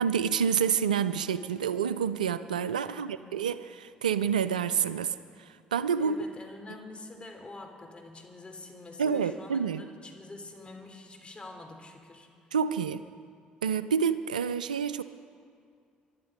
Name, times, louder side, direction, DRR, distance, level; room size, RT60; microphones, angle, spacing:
voice 1, 0.0-6.2 9.0-9.9 12.5-13.0 13.6-15.0, right 7 dB, 90° right, 14 dB, 0.3 m, -28 dB
voice 2, 2.8-3.3 6.0-12.3, left 2 dB, 25° left, 3 dB, 3.3 m, -46 dB
23.5 x 11.5 x 5.1 m, 2.3 s
hypercardioid pair, 50°, 4 cm